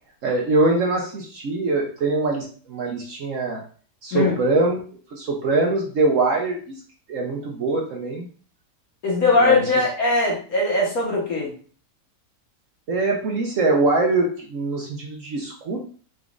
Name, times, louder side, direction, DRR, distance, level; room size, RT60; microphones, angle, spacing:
voice 1, 0.2-3.6 4.0-4.8 5.1-6.8 7.1-8.3 9.4-9.6 12.9-15.9, right 2 dB, 60° right, 0 dB, 0.9 m, -23 dB
voice 2, 9.0-11.5, left 3 dB, 60° left, -2 dB, 1.6 m, -20 dB
4.0 x 3.5 x 2.4 m, 0.42 s
omnidirectional pair, 1.8 m